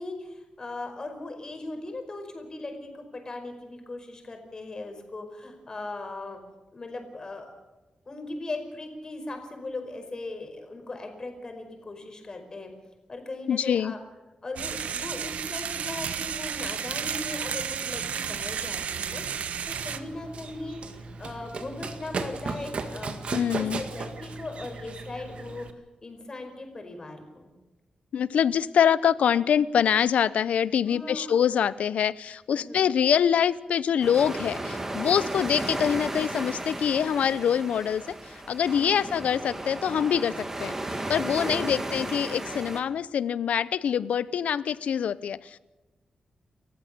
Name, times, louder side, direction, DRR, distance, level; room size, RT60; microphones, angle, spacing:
voice 1, 0.0-6.4 6.7-7.6 8.0-12.7 13.1-14.0 14.4-23.2 23.5-25.7 26.0-27.5 30.8-31.4 32.5-32.9 38.7-39.0 41.3-41.8, left 2 dB, 35° left, 5 dB, 5.0 m, -38 dB
voice 2, 13.5-13.9 23.3-23.8 28.1-45.6, left 8 dB, 90° left, 17 dB, 0.7 m, -25 dB
sound 1, 14.6-20.0, right 7 dB, 85° right, 1.2 m, -32 dB
Run, 19.7-25.7, right 4 dB, 60° right, 1.9 m, -36 dB
sound 2, 34.0-42.8, right 1 dB, 20° right, 2.6 m, -34 dB
29.5 x 15.0 x 6.8 m, 1.1 s
wide cardioid pair, 120°, 2 cm